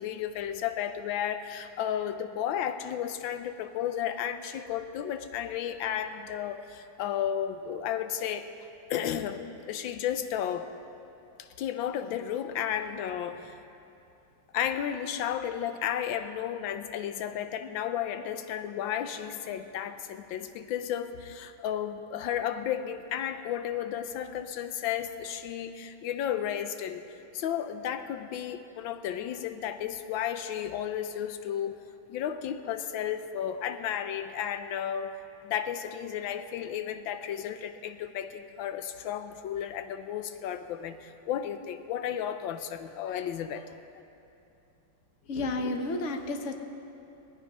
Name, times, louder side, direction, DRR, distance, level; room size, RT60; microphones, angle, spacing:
voice 1, 0.0-8.5 8.9-10.7 11.4-13.6 14.5-27.0 27.3-31.8 32.1-35.1 35.4-43.7, left 9 dB, 75° left, 9 dB, 1.3 m, -33 dB
voice 2, 45.3-46.5, left 2 dB, 55° left, 5 dB, 0.8 m, -31 dB
19.0 x 9.1 x 5.4 m, 2.8 s
omnidirectional pair, 2.3 m